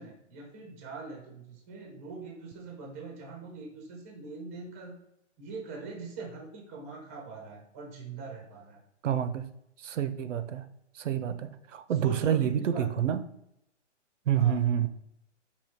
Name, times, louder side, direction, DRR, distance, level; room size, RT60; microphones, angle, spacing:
voice 1, 0.0-5.0 5.4-8.8 12.0-13.1 14.3-14.6, right 4 dB, 15° right, 0 dB, 0.3 m, -42 dB
voice 2, 9.0-9.5 9.8-10.7 10.9-13.2 14.3-14.9, right 9 dB, 85° right, 11 dB, 0.5 m, -28 dB
4.8 x 2.7 x 2.7 m, 0.79 s
hypercardioid pair, 140°, 36 cm